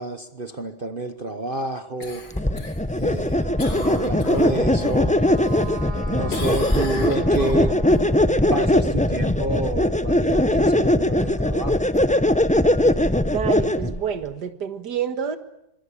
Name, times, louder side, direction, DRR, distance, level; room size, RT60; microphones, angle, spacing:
voice 1, 0.0-2.2 3.0-5.2 6.1-8.1 8.5-11.8, right 2 dB, 35° right, 9 dB, 1.1 m, -29 dB
Cough, 2.0-5.0 5.4-6.0 6.3-8.0 12.4-12.5, left 3 dB, 80° left, 4.3 m, -36 dB
sound 1, 2.3-14.0, left 1 dB, 10° left, 0.5 m, -20 dB
Wind instrument woodwind instrument, 3.3-8.2, left 1 dB, 15° right, 7.7 m, -38 dB
voice 2, 13.3-15.4, right 7 dB, 70° right, 9 dB, 2.2 m, -28 dB
26.0 x 23.0 x 8.5 m, 0.82 s
omnidirectional pair, 1.9 m